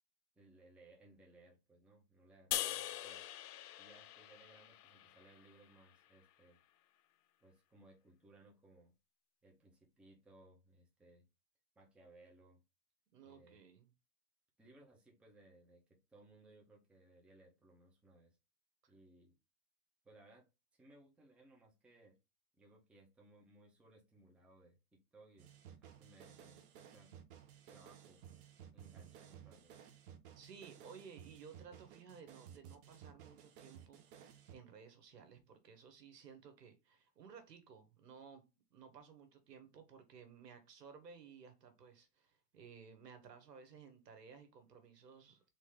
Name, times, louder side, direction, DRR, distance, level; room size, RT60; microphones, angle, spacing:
voice 1, 0.4-3.2 3.8-6.6 7.4-8.9 9.4-11.3 11.8-12.6 13.2-13.6 14.6-18.4 18.9-19.3 20.0-20.5 20.7-22.2 22.6-25.5 25.8-27.1 27.7-28.2 28.7-29.8, right 2 dB, ahead, 0.5 m, -64 dB
sound 1, 2.5-5.8, left 13 dB, 75° left, 0.6 m, -43 dB
voice 2, 13.1-13.9 18.8-18.9 30.3-38.4 38.7-45.4, right 6 dB, 85° right, 1.5 m, -57 dB
sound 2, 25.4-34.5, right 9 dB, 35° right, 0.8 m, -57 dB
3.8 x 3.1 x 3.8 m
hypercardioid pair, 130°, 47 cm